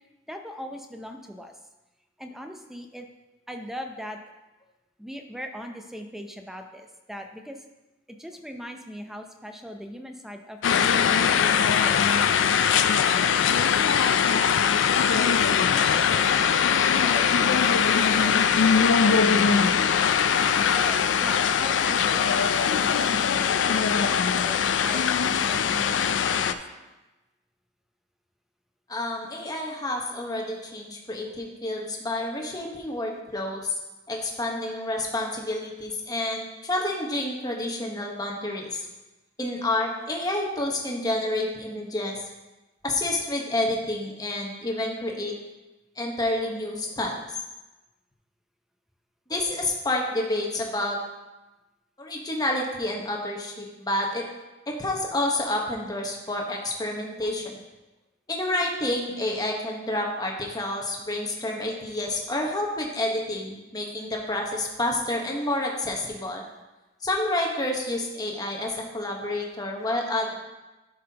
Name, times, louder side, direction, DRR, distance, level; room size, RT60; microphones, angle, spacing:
voice 1, 0.3-1.5 2.2-3.1 3.5-4.2 5.0-7.6 8.2-11.9 15.7-16.0 16.9-18.3 18.7-19.9 20.7-25.1 25.4-26.6, equal, ahead, 4 dB, 0.6 m, -39 dB
sound 1, 10.6-26.5, left 7 dB, 80° left, 0.4 m, -21 dB
voice 2, 28.9-33.7 34.1-38.8 39.4-42.1 42.8-45.3 46.0-47.2 49.3-51.0 52.0-54.3 54.7-57.6 58.3-66.4 67.0-70.3, left 1 dB, 20° left, 0 dB, 1.2 m, -29 dB
11.0 x 5.6 x 2.9 m, 1.1 s
head